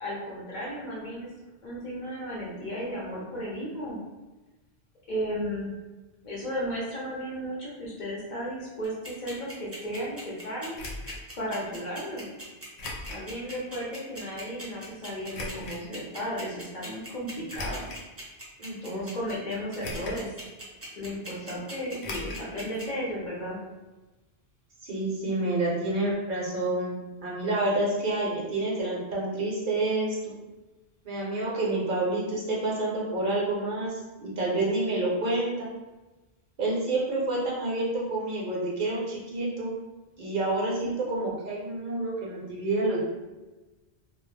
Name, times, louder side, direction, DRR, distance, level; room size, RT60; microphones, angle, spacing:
voice 1, 0.0-1.3 1.6-4.0 5.1-5.7 6.2-10.8 11.4-12.3 13.1-17.9 18.8-20.3 21.0-23.6 40.8-40.9, equal, 55° left, -5 dB, 0.7 m, -34 dB
sound 1, 8.8-22.8, right 1 dB, 15° right, 0.5 m, -41 dB
sound 2, 10.7-11.2 12.8-13.3 13.8-13.9 15.3-15.8 17.5-18.1 18.7-18.8 19.8-20.3 20.6-20.7 22.0-22.5 22.7-22.8 23.1-23.2, left 2 dB, 85° left, 0.8 m, -37 dB
voice 2, 18.6-19.1 24.8-30.3 31.0-35.7 36.6-39.7 40.2-43.0, right 2 dB, 55° right, -4 dB, 0.7 m, -28 dB
2.1 x 2.0 x 3.1 m, 1.1 s
omnidirectional pair, 1.1 m